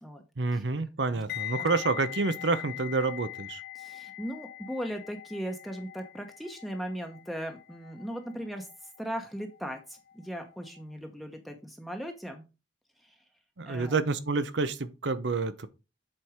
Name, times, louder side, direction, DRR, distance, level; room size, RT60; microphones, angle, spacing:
voice 1, 0.4-3.6 13.6-15.7, right 3 dB, 80° right, 0.8 m, -28 dB
sound 1, 1.3-10.3 10.5-10.8, left 16 dB, 55° left, 0.7 m, -42 dB
voice 2, 3.8-8.7 9.0-12.4 13.6-14.0, equal, ahead, 0.9 m, -38 dB
7.7 x 4.5 x 5.0 m
head